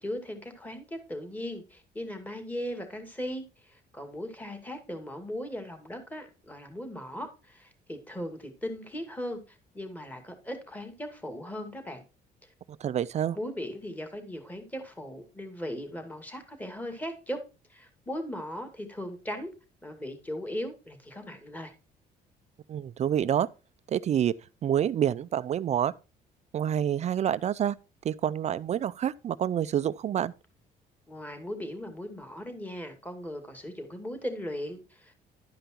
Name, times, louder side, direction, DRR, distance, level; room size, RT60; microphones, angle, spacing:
voice 1, 0.0-12.0 13.3-17.4 17.7-19.5 19.8-21.7 31.1-35.3, equal, 10° left, 2.3 m, -38 dB
voice 2, 12.8-13.4 22.7-23.5 23.9-24.4 24.6-25.9 26.5-27.8 28.0-30.3, right 10 dB, 40° right, 0.4 m, -27 dB
11.5 x 5.2 x 4.4 m
cardioid pair, 110°, 17 cm